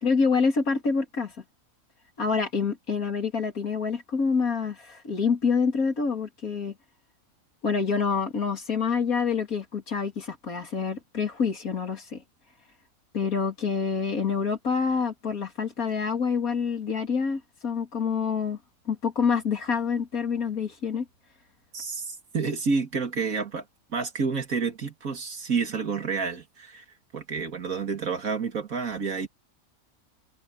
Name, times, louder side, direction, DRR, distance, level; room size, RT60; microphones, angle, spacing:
voice 1, 0.0-1.3 2.2-6.7 7.6-12.2 13.1-18.6 18.9-21.1, left 5 dB, 90° left, 3.5 m, -27 dB
voice 2, 21.7-26.8 27.1-29.3, right 5 dB, 80° right, 2.6 m, -29 dB
omnidirectional pair, 1.4 m